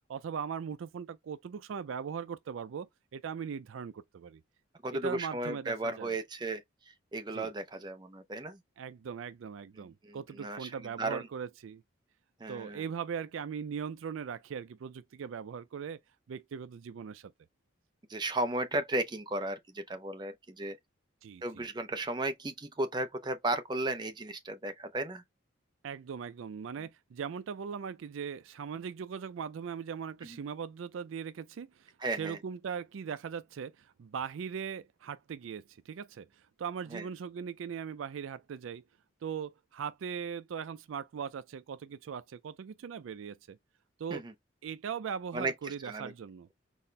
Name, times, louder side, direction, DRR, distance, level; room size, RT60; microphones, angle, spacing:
voice 1, 0.1-4.4 4.9-6.2 7.3-7.5 8.8-11.8 12.5-16.0 16.3-17.3 21.2-21.6 25.8-31.9 32.2-36.3 36.6-38.8 39.2-43.6 44.0-44.2 44.6-46.5, right 7 dB, 85° right, 0.4 m, -39 dB
voice 2, 4.8-6.6 7.1-8.6 9.8-10.7 11.0-11.3 12.4-12.8 18.1-20.8 21.4-25.2 30.3-30.4 32.0-32.4 36.9-37.1 44.1-44.3 45.3-46.1, right 2 dB, 20° right, 0.5 m, -35 dB
4.2 x 2.1 x 3.2 m
head